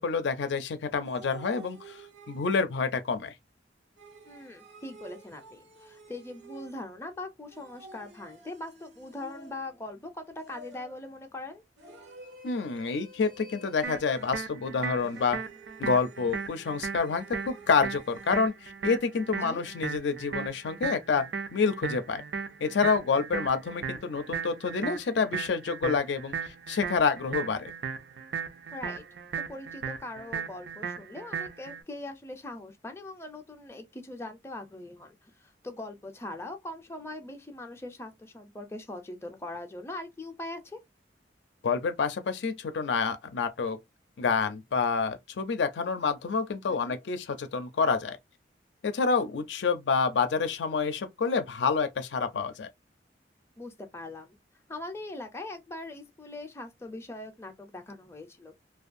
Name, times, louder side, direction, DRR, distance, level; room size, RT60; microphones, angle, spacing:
voice 1, 0.0-2.0 2.3-3.3 12.4-15.4 15.8-22.2 22.6-27.7 41.6-43.8 44.2-48.2 48.8-52.7, left 5 dB, 85° left, 0.4 m, -28 dB
sound 1, 1.0-2.8 4.0-7.0 7.5-9.9 10.4-11.1 11.8-14.6 15.0-18.5, right 1 dB, 90° right, 0.8 m, -51 dB
voice 2, 4.3-11.6 19.3-19.6 28.7-29.0 29.4-40.8 46.7-47.0 53.6-54.4 54.7-58.6, left 2 dB, 15° left, 0.4 m, -41 dB
sound 2, 13.8-31.8, right 6 dB, 65° right, 0.4 m, -37 dB
2.5 x 2.2 x 2.5 m
head